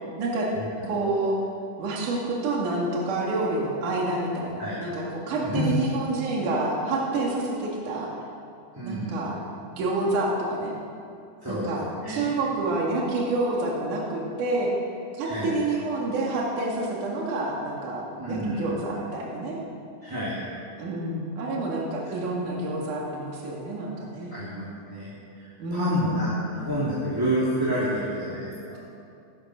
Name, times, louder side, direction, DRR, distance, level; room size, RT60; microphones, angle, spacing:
voice 1, 0.2-0.5 0.8-1.4 1.8-8.1 8.8-9.4 9.8-10.7 11.5-14.7 15.1-19.6 20.8-24.4 25.6-26.2, right 2 dB, 70° right, -2 dB, 3.6 m, -28 dB
voice 2, 5.4-5.8 8.8-9.2 11.4-11.7 12.0-12.3 15.2-15.5 18.2-18.8 20.0-20.4 24.3-28.8, equal, 5° right, -9 dB, 2.5 m, -29 dB
16.5 x 13.0 x 6.4 m, 2.5 s
omnidirectional pair, 3.8 m